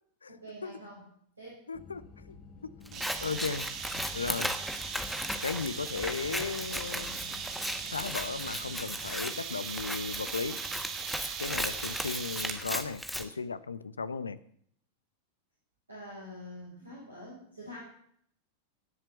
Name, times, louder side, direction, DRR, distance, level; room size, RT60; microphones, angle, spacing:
voice 1, 0.3-1.1 1.4-1.6 15.9-17.8, equal, 80° right, -5 dB, 5.6 m, -46 dB
voice 2, 1.7-2.4 2.6-3.6 3.9-4.6 5.4-7.4 7.9-10.6 11.4-14.4, left 5 dB, 75° left, 16 dB, 0.8 m, -36 dB
sound 1, 1.7-9.1, left 4 dB, 35° left, 1.5 m, -52 dB
Scissors, 2.9-13.2, equal, ahead, 1.5 m, -37 dB
sound 2, 2.9-12.7, right 7 dB, 30° right, 2.3 m, -39 dB
18.0 x 7.6 x 8.1 m, 0.67 s
figure-of-eight pair, 90°, 0 cm